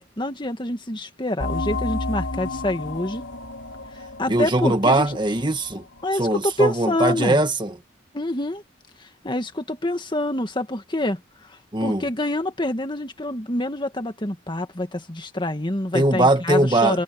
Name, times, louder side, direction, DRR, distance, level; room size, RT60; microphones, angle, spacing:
voice 1, 0.0-3.2 4.2-5.1 6.0-7.4 8.1-8.6 9.0-17.0, left 1 dB, 25° left, 1.9 m, -26 dB
sound 1, 1.4-6.7, left 2 dB, 85° left, 3.0 m, -32 dB
voice 2, 4.3-5.8 6.1-7.7 11.7-12.1 15.9-17.0, right 2 dB, 25° right, 1.7 m, -20 dB
head